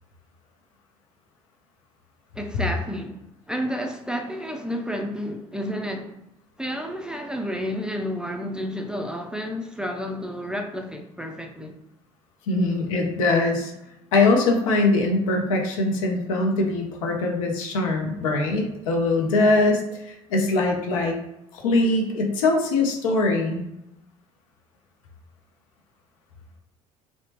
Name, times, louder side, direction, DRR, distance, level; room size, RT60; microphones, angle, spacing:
voice 1, 2.3-6.2 6.6-11.8, equal, 5° right, 0.4 m, -31 dB
voice 2, 12.5-13.7 14.1-21.2 21.5-23.6, left 2 dB, 80° left, 0.6 m, -22 dB
2.8 x 2.1 x 2.8 m
hypercardioid pair, 60°, 17 cm